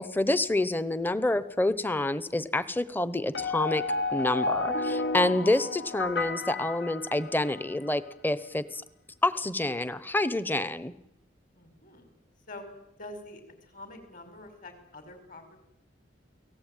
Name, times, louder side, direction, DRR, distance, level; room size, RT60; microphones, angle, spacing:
voice 1, 0.0-3.8 4.1-8.8 9.2-10.9, left 2 dB, 10° left, 15 dB, 1.0 m, -28 dB
sound 1, 3.3-7.7, left 3 dB, 65° left, 1.3 m, -31 dB
voice 2, 11.5-12.1 12.5-12.7 13.0-15.6, left 2 dB, 45° left, 8 dB, 5.4 m, -46 dB
29.0 x 18.5 x 9.2 m, 0.86 s
head